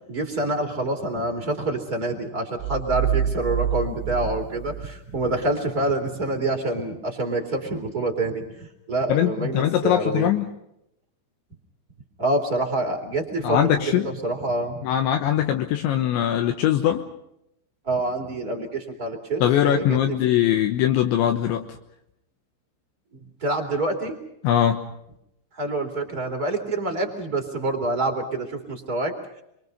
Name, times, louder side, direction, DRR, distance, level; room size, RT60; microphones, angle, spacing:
voice 1, 0.1-10.3 12.2-14.9 17.8-20.2 23.4-24.2 25.5-29.4, right 2 dB, 20° right, 2 dB, 3.2 m, -27 dB
sound 1, 2.6-5.4, right 9 dB, 85° right, 3.5 m, -27 dB
voice 2, 9.1-10.5 13.4-14.1 14.8-17.0 19.4-21.7 24.4-24.8, left 11 dB, 75° left, 5 dB, 3.4 m, -21 dB
29.5 x 24.0 x 5.4 m, 0.79 s
omnidirectional pair, 5.6 m